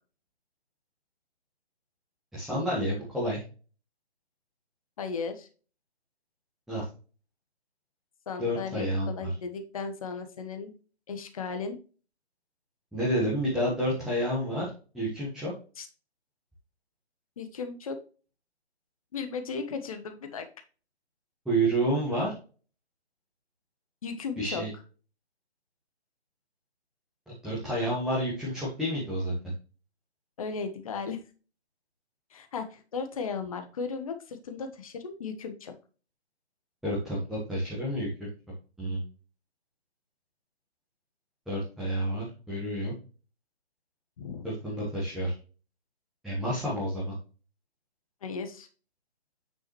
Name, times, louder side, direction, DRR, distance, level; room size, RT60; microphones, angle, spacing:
voice 1, 2.3-3.4 6.7-6.8 8.4-9.3 12.9-14.7 14.9-15.5 21.4-22.3 24.4-24.7 27.4-29.3 36.8-38.3 38.8-39.0 41.5-42.9 44.4-45.3 46.2-47.1, right 1 dB, ahead, -7 dB, 1.4 m, -29 dB
voice 2, 5.0-5.5 8.3-10.7 11.1-11.8 15.8-15.9 17.4-18.0 19.1-20.5 24.0-24.6 30.4-31.2 32.3-35.7 44.2-44.4 48.2-48.7, left 5 dB, 35° left, 8 dB, 1.3 m, -36 dB
9.2 x 6.1 x 3.1 m, 0.36 s
figure-of-eight pair, 140°, 33 cm